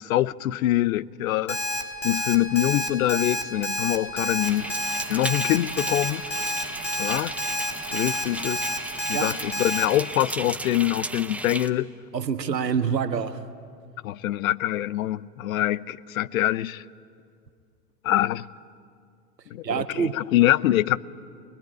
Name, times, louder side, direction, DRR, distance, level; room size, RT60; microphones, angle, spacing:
voice 1, 0.0-1.6 2.0-4.6 5.1-6.2 7.0-7.3 7.9-8.7 9.1-11.9 14.0-16.8 18.0-18.5 19.5-21.0, left 14 dB, 55° left, 0.8 m, -24 dB
Alarm, 1.5-9.9, left 1 dB, 80° left, 3.6 m, -28 dB
sound 1, 4.4-11.7, right 2 dB, 5° right, 0.7 m, -35 dB
voice 2, 12.1-13.4 19.6-20.2, right 7 dB, 80° right, 1.4 m, -26 dB
24.0 x 21.0 x 9.2 m
figure-of-eight pair, 95°, 50 cm